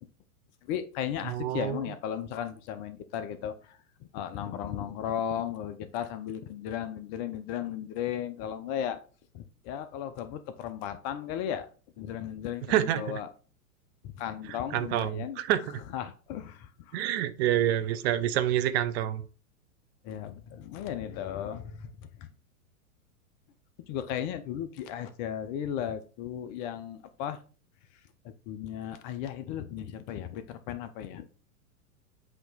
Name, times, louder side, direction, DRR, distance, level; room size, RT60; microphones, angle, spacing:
voice 1, 0.7-3.8 4.1-9.0 9.3-11.7 12.0-13.3 14.0-15.4 15.9-17.1 20.0-22.1 23.9-27.4 28.2-31.3, left 9 dB, 35° left, 0.6 m, -35 dB
voice 2, 1.3-1.8 12.7-13.2 14.5-15.8 16.9-19.2, right 12 dB, 45° right, 0.7 m, -28 dB
7.9 x 2.9 x 4.0 m
hypercardioid pair, 110°, 43 cm